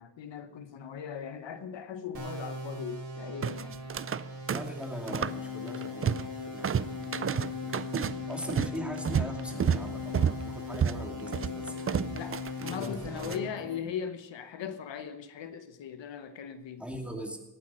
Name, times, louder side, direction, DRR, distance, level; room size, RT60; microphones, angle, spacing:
voice 1, 0.0-3.9 12.1-16.8, left 8 dB, 85° left, 1.0 m, -39 dB
sound 1, 2.1-13.5, right 2 dB, 60° right, 4.4 m, -42 dB
sound 2, 3.4-4.2 4.5-5.4 5.7-6.3 6.6-13.4, right 8 dB, 35° right, 0.4 m, -31 dB
voice 2, 4.5-7.8 8.1-12.2 12.6-13.8 16.8-17.4, equal, 5° right, 2.5 m, -41 dB
sound 3, 5.1-13.8, left 14 dB, 50° left, 0.5 m, -40 dB
18.0 x 8.4 x 6.2 m
cardioid pair, 95°, 43 cm